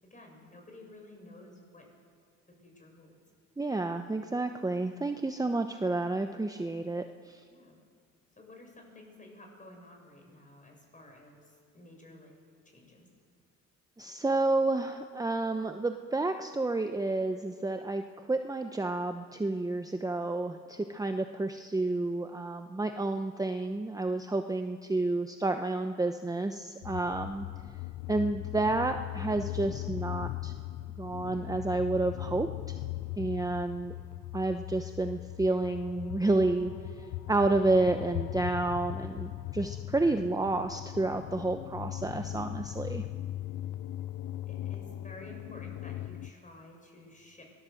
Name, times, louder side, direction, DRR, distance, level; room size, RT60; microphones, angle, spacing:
voice 1, 0.0-1.9 2.5-3.1 7.5-7.8 8.4-12.3 12.6-13.1 33.1-33.5 44.5-47.4, left 1 dB, 25° left, 1 dB, 7.2 m, -52 dB
voice 2, 3.6-7.4 14.0-27.5 28.1-30.5 31.0-32.8 33.2-33.9 34.3-36.7 37.0-43.0, right 2 dB, 10° right, 6 dB, 0.9 m, -30 dB
sound 1, 26.8-46.3, left 15 dB, 80° left, 0.6 m, -39 dB
24.0 x 19.0 x 7.8 m, 2.1 s
cardioid pair, 90°, 30 cm